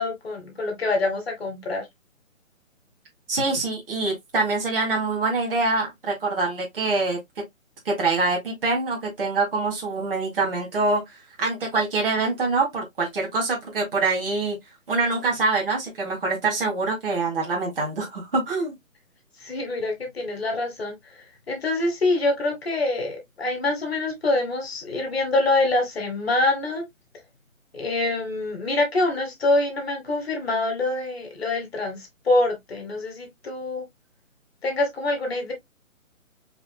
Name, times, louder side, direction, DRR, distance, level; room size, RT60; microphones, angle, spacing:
voice 1, 0.0-1.9 19.4-20.9 21.5-26.9 27.7-33.8 34.6-35.5, left 2 dB, 50° left, 1.9 m, -25 dB
voice 2, 3.3-7.2 7.9-11.0 11.4-14.6 14.9-18.7, right 3 dB, 40° right, 2.1 m, -25 dB
4.5 x 4.0 x 2.2 m
hypercardioid pair, 170°, 40 cm